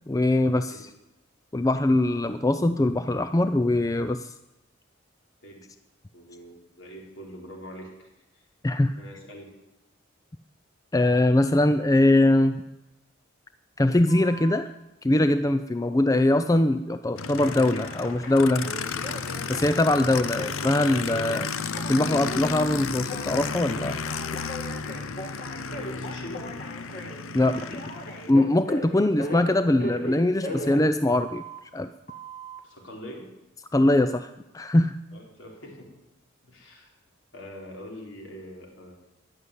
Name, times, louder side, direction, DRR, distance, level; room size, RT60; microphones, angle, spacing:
voice 1, 0.1-0.9 1.5-4.3 8.6-9.0 10.9-12.6 13.8-14.7 15.0-18.7 19.5-21.5 21.9-24.0 27.3-27.7 28.3-31.4 31.7-31.9 33.7-35.0, left 1 dB, 15° left, 10 dB, 0.4 m, -22 dB
voice 2, 6.1-8.1 8.3-8.5 9.0-9.5 25.6-26.5 32.6-33.3 35.1-35.9 36.4-36.9 37.3-38.9, equal, 60° left, 0 dB, 4.2 m, -43 dB
Telephone, 14.1-14.6 17.4-31.6 32.1-32.6, equal, 45° left, 2.4 m, -38 dB
Aircraft, 17.2-28.3, left 5 dB, 80° left, 0.7 m, -33 dB
14.0 x 11.0 x 8.2 m, 0.95 s
head